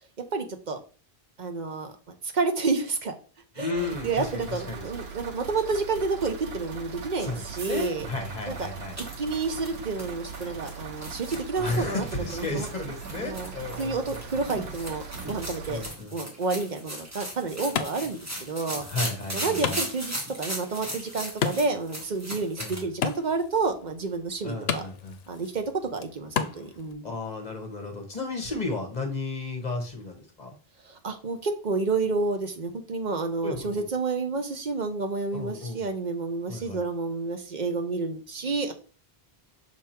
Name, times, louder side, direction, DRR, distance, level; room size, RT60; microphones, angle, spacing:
voice 1, 0.2-0.8 1.4-1.9 2.3-3.1 3.6-8.1 8.5-8.6 9.0-12.7 13.2-13.5 13.8-15.8 16.1-18.8 19.3-24.8 25.3-27.1 30.8-38.7, right 4 dB, 50° right, 6 dB, 0.9 m, -30 dB
voice 2, 3.6-4.8 7.2-9.0 11.6-14.2 14.5-14.7 15.7-16.1 18.8-19.8 22.6-22.9 24.4-25.2 27.0-30.5 33.4-33.9 35.3-35.8 36.5-36.8, left 3 dB, 45° left, 3 dB, 1.3 m, -33 dB
sound 1, 3.7-15.9, right 6 dB, 90° right, 1.2 m, -40 dB
sound 2, 8.6-22.8, equal, 15° right, 1.4 m, -38 dB
Wood, 16.9-26.9, left 7 dB, 80° left, 0.9 m, -36 dB
6.0 x 3.6 x 4.4 m, 0.38 s
omnidirectional pair, 1.0 m